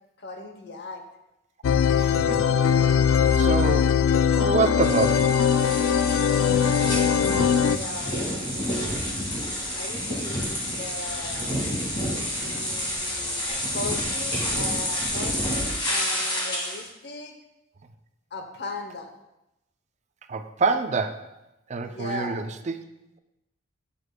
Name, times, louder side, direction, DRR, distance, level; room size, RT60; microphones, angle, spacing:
voice 1, 0.2-1.0 6.7-9.0 9.7-11.6 12.4-17.4 18.3-19.1 21.8-22.5, left 2 dB, 55° left, 5 dB, 0.9 m, -38 dB
sound 1, 1.6-7.8, left 7 dB, 80° left, 0.3 m, -21 dB
voice 2, 2.0-2.5 2.8-3.0 3.4-4.0 4.3-5.4 20.3-21.3 21.7-22.7, right 4 dB, 35° right, 8 dB, 0.4 m, -26 dB
sound 2, 4.8-16.8, left 1 dB, 25° left, 1.9 m, -29 dB
10.5 x 6.8 x 2.2 m, 0.93 s
head